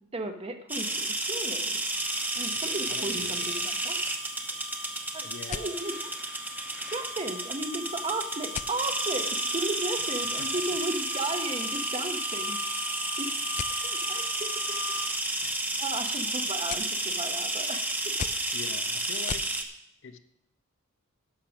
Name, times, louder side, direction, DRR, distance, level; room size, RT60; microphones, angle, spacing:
voice 1, 0.1-1.7 2.3-4.0 5.1-6.1 6.9-12.6 13.2-13.3 13.8-14.8 15.8-18.1, right 2 dB, 30° right, 6 dB, 1.0 m, -35 dB
sound 1, 0.7-19.6, right 2 dB, 10° right, 1.0 m, -31 dB
sound 2, 1.5-1.7 2.0-2.1 2.7-2.8 3.0-3.1 3.7-4.7 5.5-6.2 6.6-7.4 8.5-9.2 9.6-9.7 10.0-12.0 12.2-12.5 13.5-13.8 15.1-15.6 16.0-19.5, left 8 dB, 35° left, 0.3 m, -40 dB
sound 3, 1.9-15.1, left 6 dB, 90° left, 1.4 m, -43 dB
voice 2, 2.9-3.7 5.2-5.7 10.4-10.6 15.4-15.6 18.5-19.4 20.0-20.2, left 4 dB, 60° left, 9 dB, 0.7 m, -43 dB
11.5 x 6.7 x 5.9 m, 0.83 s
head